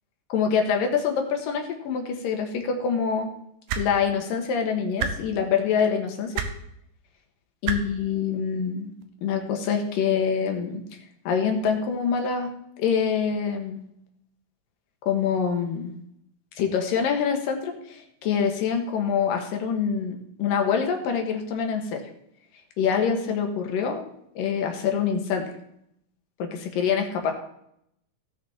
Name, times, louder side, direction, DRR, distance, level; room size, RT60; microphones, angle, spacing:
voice 1, 0.3-3.3 3.8-6.4 7.6-8.9 9.2-10.8 11.2-12.5 12.8-13.8 15.1-15.9 16.6-22.1 22.8-24.0 24.4-25.5 26.4-27.3, left 6 dB, 85° left, 4 dB, 3.2 m, -25 dB
sound 1, 3.7-3.8 5.0-5.1 6.3-6.5 7.6-7.8 9.0-9.1, right 7 dB, 85° right, 2.7 m, -26 dB
17.5 x 6.4 x 4.3 m, 0.74 s
omnidirectional pair, 3.8 m